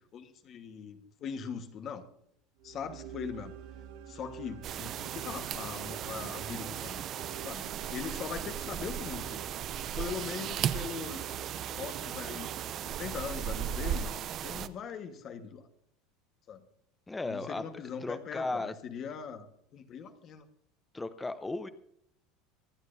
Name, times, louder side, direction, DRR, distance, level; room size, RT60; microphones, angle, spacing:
voice 1, 0.1-2.0 2.6-3.5 4.1-7.0 7.4-9.4 9.9-11.3 11.7-14.1 14.4-15.7 16.5-16.6 17.2-19.5 19.7-20.5, left 7 dB, 35° left, 7 dB, 1.4 m, -41 dB
sound 1, 2.6-13.9, right 9 dB, 75° right, 1.5 m, -48 dB
sound 2, 4.6-14.7, right 10 dB, 35° right, 0.6 m, -36 dB
voice 2, 17.1-17.7 18.0-18.7 20.9-21.7, left 2 dB, 10° left, 11 dB, 0.6 m, -35 dB
25.0 x 11.0 x 2.7 m, 0.71 s
cardioid pair, 160°, 0 cm